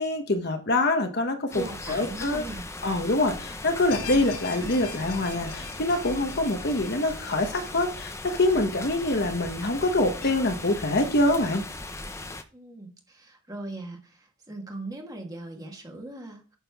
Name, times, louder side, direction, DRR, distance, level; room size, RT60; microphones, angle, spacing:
voice 1, 0.0-2.4 2.8-11.6, left 2 dB, 45° left, 6 dB, 1.0 m, -25 dB
sound 1, 1.5-12.4, left 2 dB, 10° left, 0.6 m, -38 dB
voice 2, 1.5-2.7 12.5-16.6, right 2 dB, 15° right, 2 dB, 1.5 m, -39 dB
sound 2, 3.9-9.1 9.5-9.6 10.2-10.3, left 6 dB, 85° left, 1.9 m, -42 dB
9.2 x 6.6 x 3.5 m, 0.37 s
head